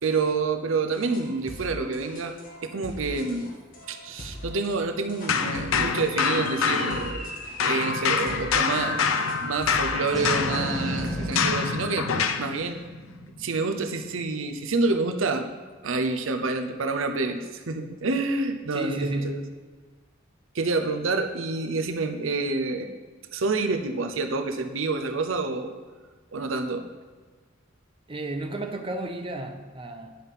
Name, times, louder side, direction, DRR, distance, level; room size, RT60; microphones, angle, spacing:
voice 1, 0.0-2.3 2.6-3.5 3.9-7.3 7.6-9.2 9.4-12.8 13.4-15.5 15.8-19.4 20.5-22.9 23.3-25.8 26.3-26.9, right 3 dB, 80° right, 7 dB, 0.8 m, -28 dB
sound 1, 0.9-11.4, left 1 dB, 45° left, 1.7 m, -43 dB
sound 2, 5.3-7.3 7.6-12.5, left 6 dB, 90° left, 0.7 m, -26 dB
sound 3, 6.1-14.7, equal, ahead, 3.4 m, -36 dB
voice 2, 18.7-19.5 28.1-30.2, right 2 dB, 25° right, 4 dB, 0.8 m, -32 dB
10.0 x 5.7 x 5.6 m, 1.4 s
head